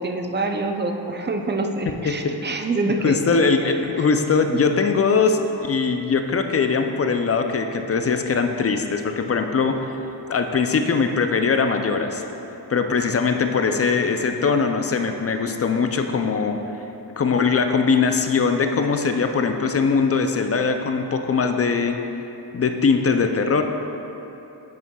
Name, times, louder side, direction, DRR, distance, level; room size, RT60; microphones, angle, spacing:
voice 1, 0.0-4.1, right 2 dB, 25° right, 5 dB, 0.5 m, -26 dB
voice 2, 3.0-9.8 10.3-12.2 12.7-16.6 17.2-22.0 22.5-23.6, left 5 dB, 35° left, 6 dB, 0.4 m, -21 dB
8.2 x 7.3 x 2.3 m, 3.0 s
cardioid pair, 85°, 43 cm